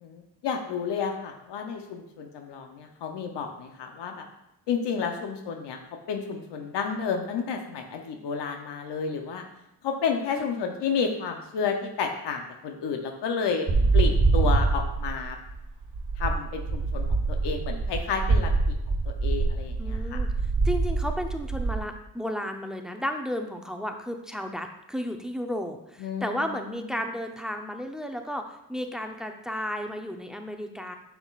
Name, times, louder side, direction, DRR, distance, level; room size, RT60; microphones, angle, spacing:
voice 1, 0.0-4.2 4.7-5.8 6.1-9.4 9.8-13.7 13.9-15.4 16.2-18.5 19.2-20.2 26.0-26.8, left 6 dB, 90° left, 4 dB, 0.8 m, -31 dB
sound 1, 13.7-21.8, right 3 dB, 50° right, 1.2 m, -25 dB
voice 2, 19.8-20.3 20.6-31.0, equal, ahead, 5 dB, 0.6 m, -33 dB
7.9 x 5.9 x 2.4 m, 0.84 s
cardioid pair, 80°, 40 cm